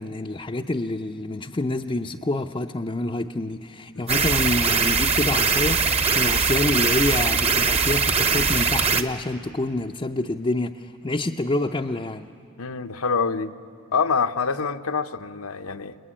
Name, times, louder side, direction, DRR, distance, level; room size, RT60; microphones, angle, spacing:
voice 1, 0.0-12.3, left 2 dB, 20° left, 0.5 m, -27 dB
sound 1, 4.1-9.0, right 5 dB, 30° right, 1.0 m, -21 dB
voice 2, 12.6-13.5 13.9-16.0, left 5 dB, 75° left, 0.9 m, -26 dB
27.5 x 21.5 x 10.0 m
head